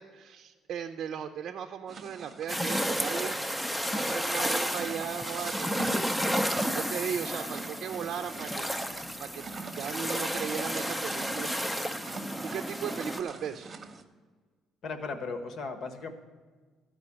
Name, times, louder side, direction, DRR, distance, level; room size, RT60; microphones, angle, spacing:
voice 1, 0.0-3.4 3.9-6.0 6.7-8.7 9.2-9.5 9.8-12.0 12.4-13.7, right 8 dB, 55° right, 4 dB, 0.5 m, -37 dB
sound 1, 1.9-14.0, right 4 dB, 30° right, 0.9 m, -44 dB
sound 2, 2.5-13.2, equal, 5° left, 0.5 m, -32 dB
voice 2, 14.8-16.1, left 4 dB, 55° left, 7 dB, 1.2 m, -36 dB
13.0 x 5.2 x 8.6 m, 1.4 s
cardioid pair, 130°, 0 cm